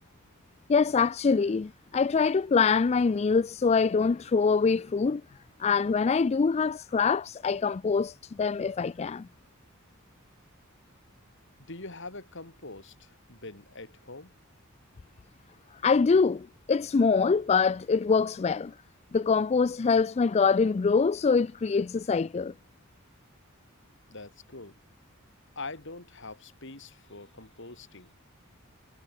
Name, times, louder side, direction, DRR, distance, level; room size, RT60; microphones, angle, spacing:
voice 1, 0.7-5.2 5.6-9.3 15.8-18.7 19.1-22.5, left 5 dB, 30° left, 0.3 m, -24 dB
voice 2, 11.6-14.3 24.1-24.8 25.6-28.1, left 3 dB, 60° left, 3.8 m, -44 dB
head